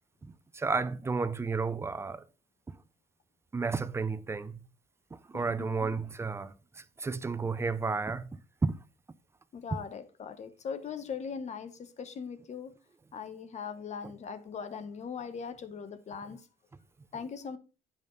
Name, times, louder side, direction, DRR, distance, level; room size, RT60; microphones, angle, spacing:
voice 1, 0.2-2.2 3.5-4.6 5.3-6.5 7.0-8.3 8.6-8.7, right 4 dB, 15° right, 0.5 m, -32 dB
voice 2, 5.3-6.0 9.5-12.8 13.1-16.5 17.1-17.6, left 6 dB, 45° left, 1.0 m, -40 dB
8.6 x 5.1 x 3.9 m
cardioid pair, 110°, 17 cm